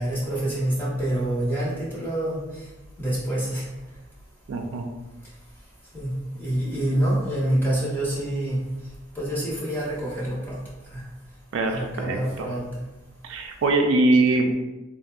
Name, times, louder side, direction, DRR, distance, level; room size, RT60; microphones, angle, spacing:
voice 1, 0.0-2.7 3.0-3.7 5.9-6.1 6.4-8.6 9.1-10.6 10.9-11.0 11.7-12.7, right 1 dB, 10° left, -7 dB, 0.8 m, -26 dB
voice 2, 4.5-4.8 11.5-12.5 13.2-14.5, right 2 dB, 65° right, 4 dB, 0.3 m, -22 dB
3.2 x 2.6 x 2.3 m, 1.1 s
head